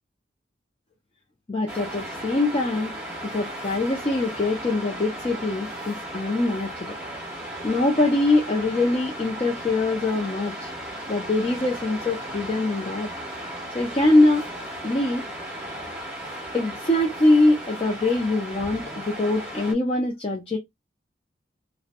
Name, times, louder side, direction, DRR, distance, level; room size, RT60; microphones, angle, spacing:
voice 1, 1.5-3.0 3.2-6.9 7.6-10.7 11.1-13.1 13.7-14.5 14.8-15.2 16.5-20.6, left 2 dB, 30° left, 0.5 m, -23 dB
Waves surf, 1.7-19.7, right 1 dB, 10° right, 0.9 m, -36 dB
2.7 x 2.0 x 2.5 m
head